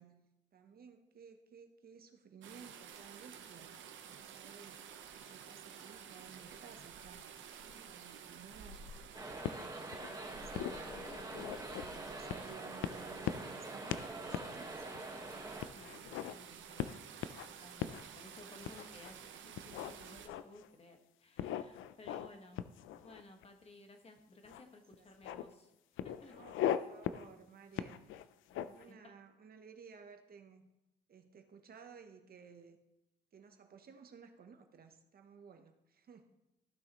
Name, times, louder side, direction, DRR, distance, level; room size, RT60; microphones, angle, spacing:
voice 1, 0.0-3.8 4.0-4.8 5.1-8.8 10.2-10.8 11.7-14.9 25.0-25.1 26.3-28.1 28.5-30.7 31.1-32.8 33.3-36.3, right 6 dB, 50° right, 6 dB, 1.0 m, -56 dB
sound 1, 2.4-20.3, right 7 dB, 75° right, 0.9 m, -52 dB
sound 2, 9.1-15.7, right 2 dB, 20° right, 1.5 m, -45 dB
sound 3, 9.4-10.1 10.5-11.9 12.3-12.6 12.8-13.6 13.9-14.1 14.3-14.5 15.0-15.1 15.6-16.4 16.8-17.5 17.8-18.0 18.6-19.1 19.6-20.7 21.4-22.3 22.6-23.5 24.5-24.6 24.9-25.5 26.0-26.8 27.0-27.3 27.8-28.9, left 11 dB, 80° left, 0.5 m, -39 dB
voice 2, 15.7-16.8 17.5-22.6 23.0-25.7 26.0-26.4 28.9-29.1, left 2 dB, 30° left, 4 dB, 1.5 m, -57 dB
14.5 x 6.2 x 3.0 m, 0.92 s
cardioid pair, 90°, 20 cm